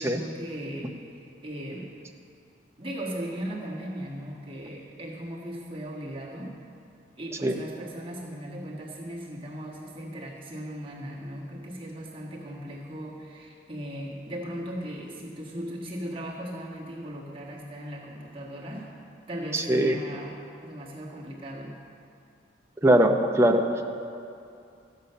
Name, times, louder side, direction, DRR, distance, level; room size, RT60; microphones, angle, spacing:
voice 1, 0.0-1.9 2.8-6.6 7.2-18.9 19.3-21.8, right 1 dB, 30° right, -4 dB, 1.6 m, -37 dB
voice 2, 19.5-20.0 22.8-23.7, right 1 dB, 15° right, 3 dB, 0.7 m, -21 dB
14.0 x 8.2 x 5.6 m, 2.5 s
head